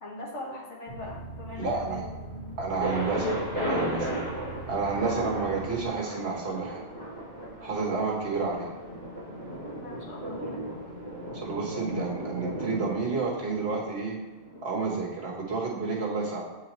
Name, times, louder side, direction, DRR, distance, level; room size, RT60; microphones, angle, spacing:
voice 1, 0.0-2.5 9.7-10.6, left 2 dB, 70° left, -3 dB, 1.7 m, -41 dB
sound 1, 0.9-5.9, right 3 dB, 35° right, 1.1 m, -41 dB
voice 2, 1.5-2.0 2.6-4.1 4.7-6.8 7.6-8.7 11.4-14.2 14.6-16.4, right 4 dB, 55° right, -2 dB, 1.5 m, -30 dB
Thunder, 2.8-14.6, equal, 45° left, 2.3 m, -35 dB
7.9 x 4.7 x 3.0 m, 1.2 s
omnidirectional pair, 1.3 m